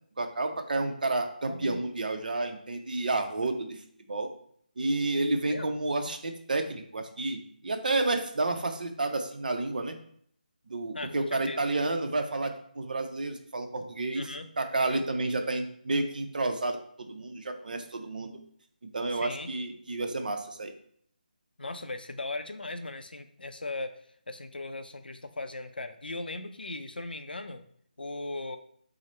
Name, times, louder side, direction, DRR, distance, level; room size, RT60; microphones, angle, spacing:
voice 1, 0.2-4.3 4.8-10.0 10.7-14.2 14.6-18.3 18.9-20.7, right 2 dB, 60° right, 6 dB, 0.6 m, -30 dB
voice 2, 1.4-1.9 5.5-5.7 10.9-11.6 14.2-14.5 14.8-15.0 19.1-19.5 21.6-24.0 24.3-27.6 28.0-28.6, left 2 dB, 85° left, 8 dB, 0.5 m, -38 dB
4.8 x 2.1 x 4.2 m, 0.64 s
figure-of-eight pair, 155°, 5 cm